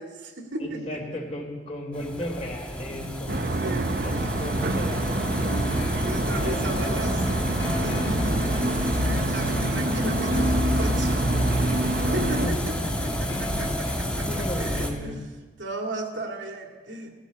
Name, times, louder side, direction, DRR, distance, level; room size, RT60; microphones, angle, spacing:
voice 1, 0.0-1.0 2.2-2.3 3.6-3.9 6.0-7.2 7.6-15.2 15.6-17.1, right 2 dB, 85° right, 1 dB, 2.5 m, -36 dB
voice 2, 0.6-5.7 6.3-7.1 11.9-12.9 13.8-15.2, left 1 dB, 35° left, 1 dB, 3.7 m, -35 dB
sound 1, 1.9-14.9, equal, 5° left, 1.6 m, -30 dB
sound 2, 3.3-12.5, right 1 dB, 50° right, 0.9 m, -27 dB
sound 3, 5.5-13.8, left 2 dB, 75° left, 1.2 m, -37 dB
18.5 x 14.5 x 4.2 m, 1.4 s
head